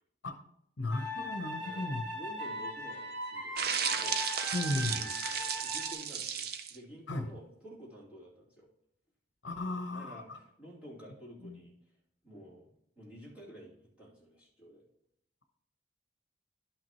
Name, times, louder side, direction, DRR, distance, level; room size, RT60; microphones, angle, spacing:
voice 1, 0.8-2.1 4.5-5.0 7.1-7.2 9.4-10.4 11.4-11.6, left 2 dB, 65° left, 6 dB, 0.8 m, -35 dB
sound 1, 0.9-5.9, left 1 dB, 65° right, 1.3 m, -39 dB
voice 2, 1.6-4.2 4.5-6.4 6.7-8.7 9.9-11.7 12.2-12.7 13.0-14.8, equal, 5° right, -7 dB, 2.6 m, -51 dB
sound 2, 3.6-6.8, right 7 dB, 50° right, 0.5 m, -34 dB
11.5 x 5.9 x 3.0 m, 0.73 s
head